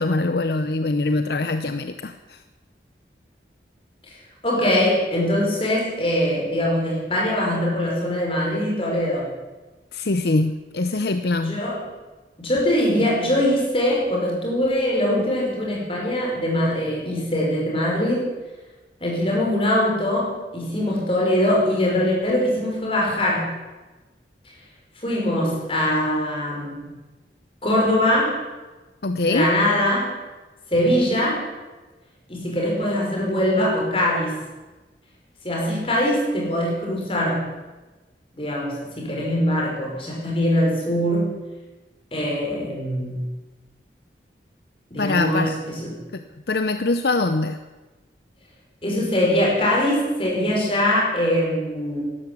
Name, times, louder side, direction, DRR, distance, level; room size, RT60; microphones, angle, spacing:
voice 1, 0.0-2.4 9.9-11.6 29.0-29.5 45.0-45.5 46.1-47.6, left 2 dB, 65° left, 9 dB, 0.7 m, -23 dB
voice 2, 4.4-9.3 11.4-11.9 12.4-18.4 19.0-23.5 25.0-26.9 27.6-28.4 29.3-30.2 30.7-31.5 32.3-34.4 35.4-37.5 38.4-41.3 42.1-43.2 44.9-46.0 48.8-52.0, left 1 dB, 30° left, -2 dB, 5.1 m, -22 dB
13.0 x 12.0 x 8.2 m, 1.2 s
head